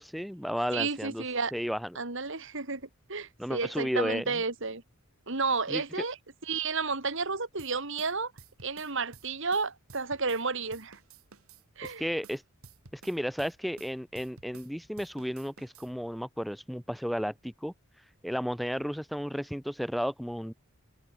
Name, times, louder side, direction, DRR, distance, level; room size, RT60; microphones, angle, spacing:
voice 1, 0.0-1.2 1.5-2.0 3.4-4.3 5.7-5.8 11.8-12.4 12.9-17.7 18.2-20.5, equal, ahead, 0.3 m, -33 dB
voice 2, 0.7-1.5 1.9-2.8 3.1-4.8 5.3-6.2 6.5-8.3 8.6-11.0 11.8-12.0, right 4 dB, 60° right, 2.8 m, -31 dB
sound 1, 7.6-10.5 10.7-14.7 15.0-15.9, right 4 dB, 85° right, 3.1 m, -53 dB
head